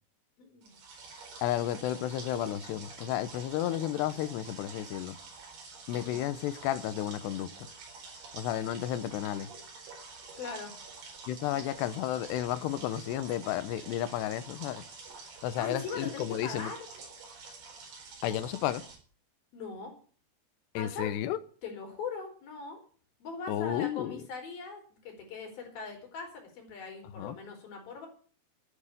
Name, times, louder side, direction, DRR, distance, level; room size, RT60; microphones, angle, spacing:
voice 1, 0.4-0.7 6.0-6.2 10.3-10.8 15.6-16.8 19.5-19.9 20.7-21.1 21.6-22.8 23.2-28.1, left 4 dB, 60° left, 6.2 m, -40 dB
sound 1, 0.6-19.0, right 4 dB, 70° right, 6.4 m, -48 dB
voice 2, 1.4-5.2 5.9-7.7 8.3-9.5 11.3-14.8 15.4-16.7 18.2-18.8 20.7-21.4 23.5-24.2 27.1-27.4, left 12 dB, 80° left, 3.1 m, -32 dB
12.0 x 9.5 x 8.7 m
omnidirectional pair, 4.9 m